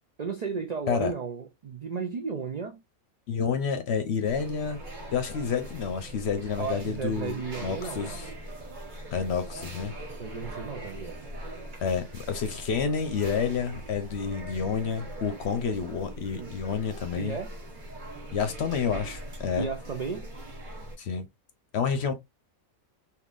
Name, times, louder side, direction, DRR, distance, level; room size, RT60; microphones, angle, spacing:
voice 1, 0.2-2.8 6.6-8.3 10.2-11.2 16.4-16.6 17.2-17.5 19.6-20.3, right 5 dB, 65° right, 0.4 m, -34 dB
voice 2, 3.3-4.8 5.1-8.3 9.1-9.9 11.8-17.4 18.3-19.7 21.0-21.3 21.7-22.1, left 6 dB, 60° left, 0.8 m, -29 dB
sound 1, 4.2-21.0, right 1 dB, 40° right, 1.1 m, -41 dB
3.6 x 2.7 x 2.4 m
omnidirectional pair, 1.4 m